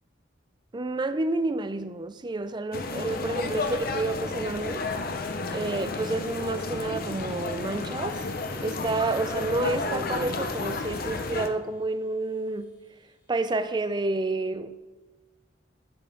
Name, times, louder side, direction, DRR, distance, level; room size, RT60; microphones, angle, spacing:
voice 1, 0.7-4.8 5.5-8.3 8.6-12.7 13.3-14.8, right 2 dB, 25° right, 0.5 m, -29 dB
sound 1, 2.7-11.5, left 3 dB, 55° left, 0.7 m, -32 dB
Subway metro underground, 8.1-11.2, left 4 dB, 80° left, 1.8 m, -47 dB
14.5 x 5.5 x 3.8 m
head